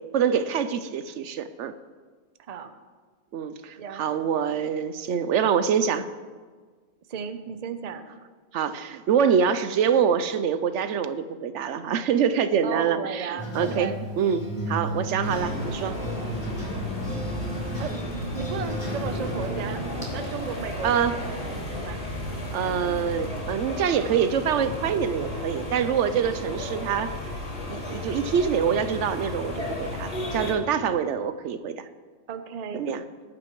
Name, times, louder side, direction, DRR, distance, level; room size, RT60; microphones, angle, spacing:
voice 1, 0.1-1.8 3.3-6.1 8.5-16.0 20.8-21.1 22.5-27.1 27.7-31.9 32.7-33.0, right 7 dB, 75° right, 12 dB, 0.9 m, -25 dB
voice 2, 2.4-2.7 3.8-4.1 7.1-8.1 12.6-14.0 14.6-14.9 17.8-17.9 18.3-19.8 20.1-22.0 26.1-26.3 32.3-32.9, right 6 dB, 40° right, 9 dB, 0.6 m, -35 dB
sound 1, 13.4-20.1, right 1 dB, 25° left, 2.5 m, -32 dB
sound 2, 15.2-30.5, left 1 dB, 65° left, 2.5 m, -34 dB
18.0 x 9.0 x 3.1 m, 1.5 s
omnidirectional pair, 1.2 m